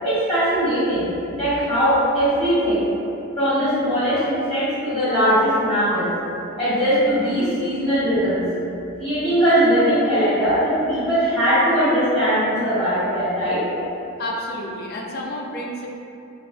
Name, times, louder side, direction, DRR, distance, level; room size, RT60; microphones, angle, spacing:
voice 1, 0.0-1.1 1.3-2.8 3.4-6.1 6.6-8.4 9.0-13.6, equal, ahead, -15 dB, 1.4 m, -20 dB
voice 2, 14.2-15.9, left 1 dB, 45° left, -1 dB, 0.4 m, -30 dB
5.3 x 2.0 x 2.6 m, 2.7 s
head